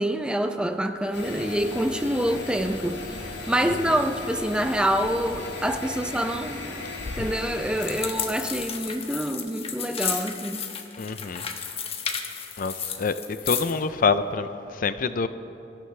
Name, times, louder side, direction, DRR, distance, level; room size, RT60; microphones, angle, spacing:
voice 1, 0.0-3.0 3.5-6.7 7.2-10.6, right 1 dB, 5° right, 0.5 m, -26 dB
sound 1, 1.1-8.1, left 2 dB, 75° left, 2.6 m, -37 dB
voice 2, 3.6-4.0 7.2-7.3 11.0-11.4 12.6-15.3, left 4 dB, 50° left, 0.5 m, -27 dB
sound 2, 7.7-13.8, left 7 dB, 35° left, 1.1 m, -33 dB
24.0 x 14.5 x 3.3 m
head